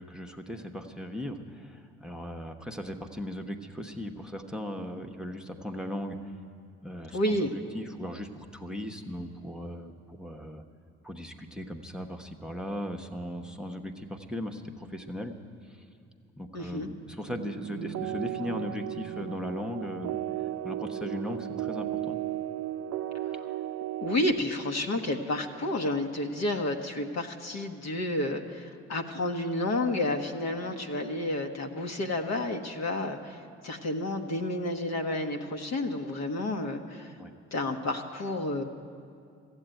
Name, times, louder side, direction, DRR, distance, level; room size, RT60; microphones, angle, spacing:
voice 1, 0.0-6.3 6.8-10.6 11.0-15.3 15.6-15.8 16.3-22.2 37.2-37.3, left 1 dB, ahead, 4 dB, 1.0 m, -38 dB
voice 2, 7.1-7.5 16.5-16.9 24.0-33.4 33.6-37.1 37.5-38.6, left 1 dB, 55° left, 4 dB, 1.2 m, -30 dB
sound 1, 17.3-24.2, right 13 dB, 55° right, 0.5 m, -35 dB
14.5 x 8.1 x 9.1 m, 2.4 s
hypercardioid pair, 55°, 31 cm